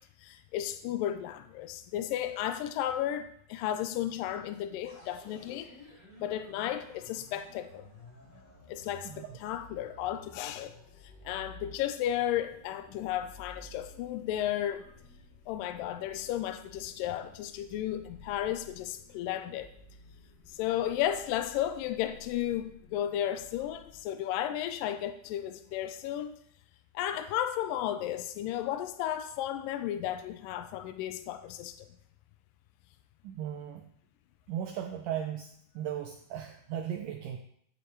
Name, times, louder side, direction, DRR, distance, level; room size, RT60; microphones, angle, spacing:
voice 1, 0.2-5.7 6.2-7.9 8.7-10.7 11.3-14.9 15.5-19.7 20.5-26.3 26.9-31.9, left 11 dB, 80° left, 9 dB, 2.0 m, -34 dB
sound 1, 4.8-24.0, left 2 dB, 20° left, 4.8 m, -54 dB
voice 2, 33.2-33.9 34.5-35.5 35.8-37.4, right 10 dB, 80° right, 4 dB, 1.9 m, -36 dB
15.0 x 6.7 x 3.2 m, 0.68 s
omnidirectional pair, 4.4 m